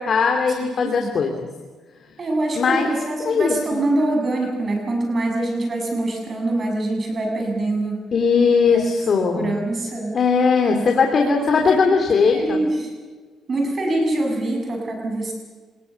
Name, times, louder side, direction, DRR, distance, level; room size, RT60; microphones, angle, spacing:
voice 1, 0.0-1.5 2.5-2.9 3.2-3.6 8.1-9.5 10.1-12.6, left 5 dB, 50° left, 3 dB, 3.0 m, -19 dB
voice 2, 2.2-8.0 9.3-10.1 10.7-10.9 11.2-11.7 12.3-12.9 13.5-15.3, right 2 dB, 40° right, 2 dB, 7.2 m, -24 dB
27.5 x 19.5 x 7.1 m, 1.4 s
cardioid pair, 90°, 0 cm